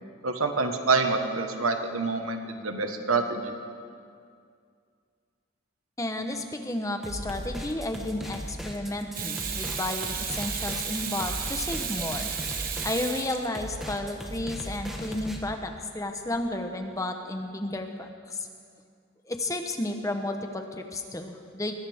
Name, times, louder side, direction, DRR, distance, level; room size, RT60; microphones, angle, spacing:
voice 1, 0.2-3.5, right 3 dB, 90° right, 6 dB, 1.4 m, -27 dB
voice 2, 6.0-12.3 12.8-18.5 19.3-21.7, left 1 dB, 15° left, 5 dB, 0.9 m, -32 dB
sound 1, 7.0-15.4, equal, ahead, 1.2 m, -38 dB
Water tap faucet / Sink (filling or washing), 9.1-13.9 16.3-16.5, right 7 dB, 40° right, 1.3 m, -33 dB
22.5 x 17.0 x 3.6 m, 2.2 s
head